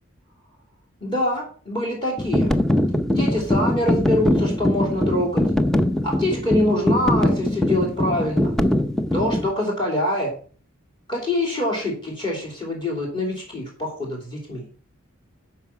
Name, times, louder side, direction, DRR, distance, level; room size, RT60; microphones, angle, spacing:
voice 1, 1.0-2.5 3.1-5.4 6.0-8.5 9.1-10.3 11.1-14.6, left 1 dB, 20° left, 0 dB, 2.7 m, -25 dB
sound 1, 2.2-9.5, left 1 dB, 5° left, 0.5 m, -21 dB
11.5 x 4.9 x 5.9 m, 0.41 s
head